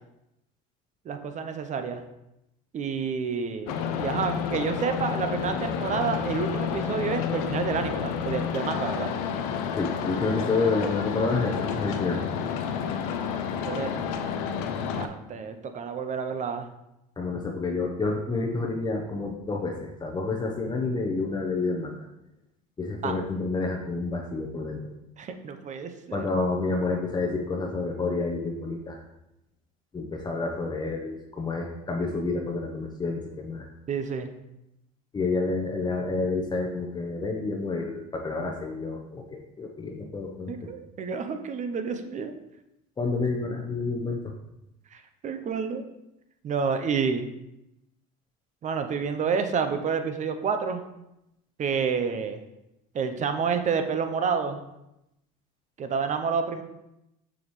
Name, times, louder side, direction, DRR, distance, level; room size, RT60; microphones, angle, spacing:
voice 1, 1.1-2.0 2.7-9.1 13.6-14.1 15.0-16.7 23.0-23.1 25.2-26.3 33.9-34.3 40.5-42.3 44.9-45.8 46.4-47.2 48.6-50.8 51.6-52.4 52.9-54.6 55.8-56.6, right 6 dB, 40° right, 8 dB, 0.8 m, -29 dB
sound 1, 3.7-15.1, left 7 dB, 80° left, 0.7 m, -30 dB
voice 2, 9.8-12.2 17.2-22.0 22.8-24.8 26.1-29.0 29.9-33.6 35.1-40.5 43.0-44.3, left 3 dB, 20° left, 0 dB, 0.9 m, -29 dB
7.0 x 5.2 x 3.2 m, 0.87 s
supercardioid pair, 95°, 20 cm